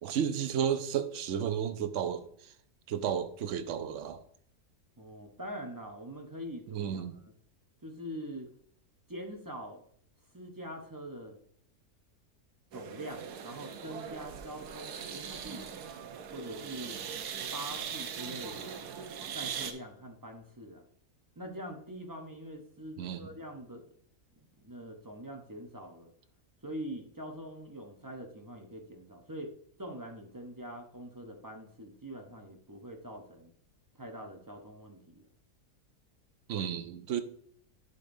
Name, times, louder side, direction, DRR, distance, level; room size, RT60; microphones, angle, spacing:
voice 1, 0.0-2.5 2.9-4.2 6.7-7.2 23.0-23.3 36.5-37.2, right 8 dB, 65° right, 0.8 m, -33 dB
voice 2, 5.0-7.2 7.8-8.5 9.1-9.8 10.3-11.4 12.7-15.7 16.3-17.0 17.5-18.7 19.2-20.9 21.4-23.8 24.4-26.1 26.6-29.5 29.8-33.5 33.9-35.3, equal, 20° right, 0.5 m, -44 dB
sound 1, 12.7-19.7, right 7 dB, 85° right, 1.3 m, -40 dB
10.5 x 5.1 x 2.6 m
omnidirectional pair, 1.6 m